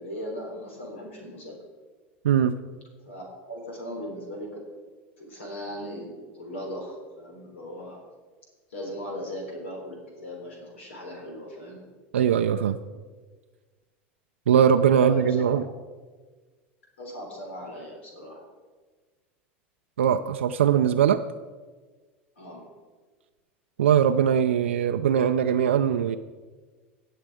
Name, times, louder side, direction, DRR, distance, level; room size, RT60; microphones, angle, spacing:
voice 1, 0.0-1.5 3.1-4.6 5.2-8.0 8.7-11.8 14.9-15.4 17.0-18.4 22.4-22.7, equal, 90° left, 0 dB, 3.7 m, -38 dB
voice 2, 2.2-2.6 12.1-12.8 14.5-15.6 20.0-21.2 23.8-26.2, right 8 dB, 90° right, 7 dB, 0.4 m, -21 dB
18.5 x 6.6 x 4.9 m, 1.4 s
hypercardioid pair, 90°, 6 cm